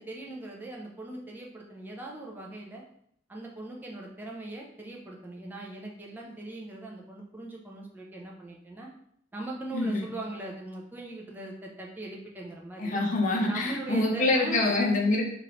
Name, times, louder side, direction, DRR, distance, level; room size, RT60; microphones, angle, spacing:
voice 1, 0.0-2.8 3.3-8.9 9.3-13.0 13.5-14.8, right 2 dB, 10° right, -2 dB, 0.4 m, -40 dB
voice 2, 9.7-10.1 12.8-15.2, left 2 dB, 40° left, -1 dB, 0.6 m, -25 dB
3.1 x 2.5 x 3.0 m, 0.70 s
head